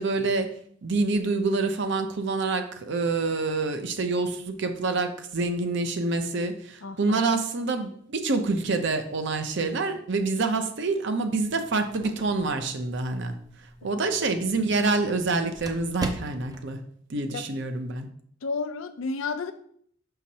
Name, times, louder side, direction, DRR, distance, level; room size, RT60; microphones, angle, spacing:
voice 1, 0.0-13.4 13.8-16.8 17.1-18.1, right 3 dB, 60° right, 7 dB, 0.7 m, -27 dB
voice 2, 6.8-7.2 17.3-17.5 18.4-19.5, left 4 dB, 80° left, 10 dB, 0.5 m, -31 dB
sound 1, 11.5-16.7, right 2 dB, 20° right, 0.4 m, -41 dB
6.1 x 5.8 x 2.8 m, 0.63 s
head